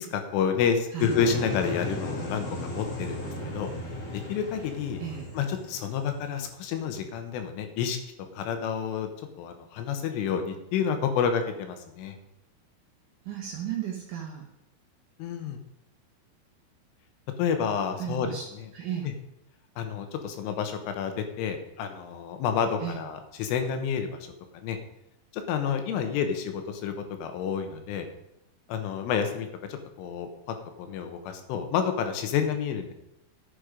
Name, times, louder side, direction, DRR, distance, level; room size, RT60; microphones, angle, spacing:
voice 1, 0.0-3.2 3.5-3.7 4.1-5.0 5.3-8.0 8.3-9.1 9.4-12.2 15.2-15.6 17.4-18.7 19.8-24.2 24.6-24.8 25.3-26.9 27.2-28.1 28.7-32.9, left 7 dB, 80° left, 6 dB, 3.6 m, -29 dB
sound 1, 1.0-6.9, left 1 dB, 45° left, 1.9 m, -36 dB
voice 2, 5.0-5.3 13.3-14.4 18.0-18.4 18.7-19.1 22.8-23.0, right 9 dB, 85° right, -1 dB, 1.8 m, -34 dB
11.5 x 7.9 x 5.1 m, 0.85 s
omnidirectional pair, 5.6 m